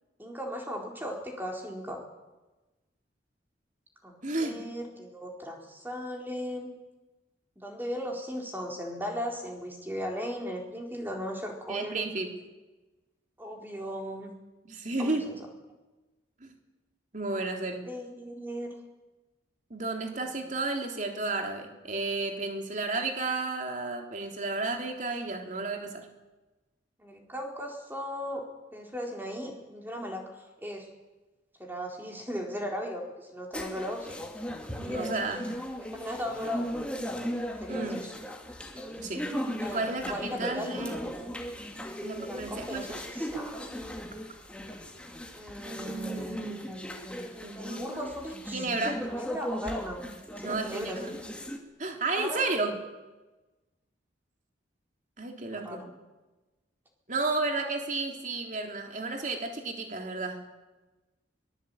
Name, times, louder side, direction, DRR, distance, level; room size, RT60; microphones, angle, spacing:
voice 1, 0.2-2.0 4.0-6.7 7.6-12.3 13.4-14.3 15.0-15.5 17.5-17.6 17.8-18.7 20.2-20.5 27.0-28.5 28.7-30.9 31.6-34.2 34.8-35.2 35.9-36.7 37.6-38.1 39.6-40.8 42.3-43.6 45.3-46.4 47.6-48.7 49.0-51.1 52.2-52.5 55.6-55.9, equal, 10° right, 1 dB, 4.1 m, -37 dB
voice 2, 4.2-4.7 11.7-12.3 14.6-15.3 16.4-16.5 17.1-17.8 19.7-26.1 34.8-35.5 35.9-36.0 37.7-38.0 39.0-39.3 39.7-41.0 42.0-42.9 45.7-46.7 47.4-48.1 48.5-49.0 50.4-51.1 51.8-52.7 55.2-55.8 57.1-60.5, right 3 dB, 40° right, 3 dB, 3.4 m, -32 dB
sound 1, 33.5-51.6, equal, 5° left, 2.4 m, -37 dB
23.5 x 20.5 x 8.7 m, 1.1 s
head